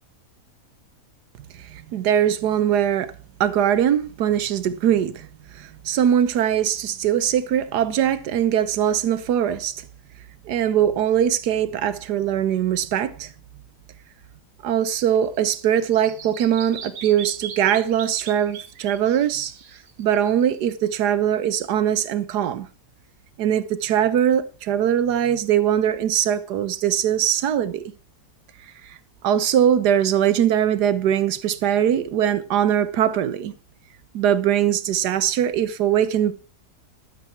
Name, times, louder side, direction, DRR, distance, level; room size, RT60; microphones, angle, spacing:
voice 1, 1.6-3.1 3.4-5.3 5.6-9.8 10.5-13.3 14.6-19.5 20.0-22.7 23.4-27.8 28.9-29.0 29.2-33.5 34.1-36.3, right 10 dB, 85° right, 1.4 m, -21 dB
Bird vocalization bird call bird song, 14.8-20.7, right 7 dB, 60° right, 1.5 m, -40 dB
12.0 x 7.8 x 4.5 m
omnidirectional pair, 1.7 m